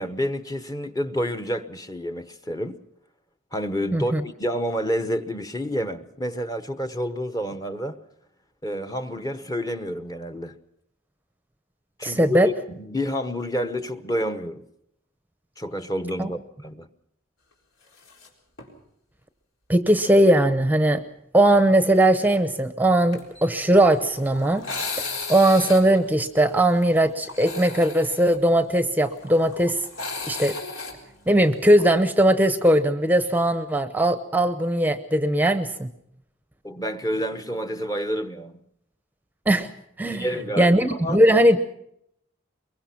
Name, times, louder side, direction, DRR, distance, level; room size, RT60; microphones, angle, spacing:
voice 1, 0.0-2.8 3.5-8.0 8.6-10.5 12.0-14.7 15.6-16.9 36.6-38.6 40.0-41.2, equal, 20° left, 0.9 m, -29 dB
voice 2, 12.0-12.5 16.2-16.3 19.7-21.0 21.3-24.7 25.3-29.8 30.3-30.5 31.3-35.9 39.5-39.7 40.0-40.2 40.6-41.6, right 1 dB, 10° right, 0.7 m, -19 dB
sound 1, 18.0-18.3 18.6-18.7 19.9-20.1 23.1-31.9, left 3 dB, 80° left, 4.1 m, -36 dB
23.0 x 22.5 x 5.8 m
head